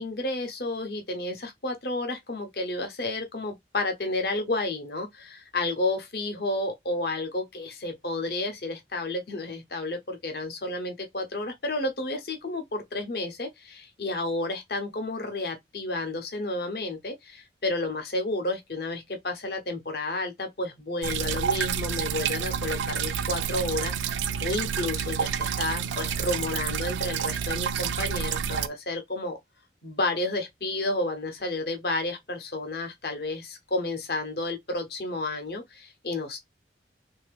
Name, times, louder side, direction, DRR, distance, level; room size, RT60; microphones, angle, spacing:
voice 1, 0.0-29.4 29.8-36.4, left 2 dB, 60° left, 0.9 m, -31 dB
sound 1, 21.0-28.7, right 7 dB, 90° right, 0.4 m, -29 dB
3.2 x 2.8 x 3.3 m
head